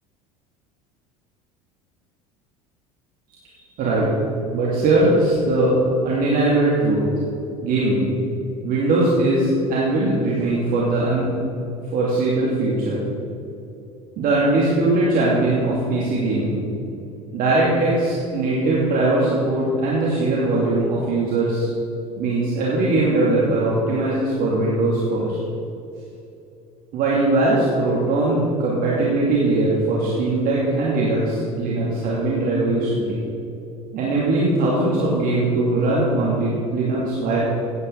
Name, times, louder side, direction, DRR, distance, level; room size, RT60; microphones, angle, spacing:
voice 1, 3.8-4.1 4.5-5.8 6.0-7.0 7.6-8.1 8.6-11.3 11.9-13.0 14.2-16.7 17.3-21.7 22.2-25.4 26.9-33.2 33.9-37.5, right 2 dB, 50° right, -6 dB, 2.7 m, -20 dB
16.0 x 9.6 x 4.1 m, 2.8 s
hypercardioid pair, 70°, 19 cm